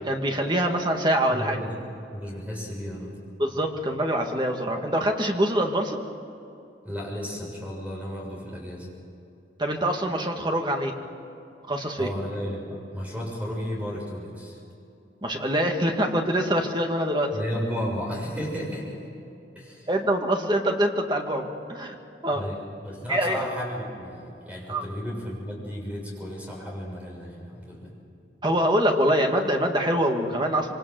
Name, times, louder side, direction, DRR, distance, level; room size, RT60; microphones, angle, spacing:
voice 1, 0.1-1.6 3.4-6.0 9.6-10.9 11.7-12.1 15.2-17.3 19.9-22.0 22.2-22.4 23.1-23.4 24.7-24.8 28.4-30.7, right 1 dB, 25° right, 3 dB, 2.2 m, -24 dB
voice 2, 1.3-1.8 2.1-3.2 6.8-8.9 12.0-14.6 17.3-19.0 19.6-19.9 22.3-27.9, equal, 10° right, -2 dB, 7.0 m, -33 dB
26.5 x 25.0 x 7.9 m, 2.7 s
head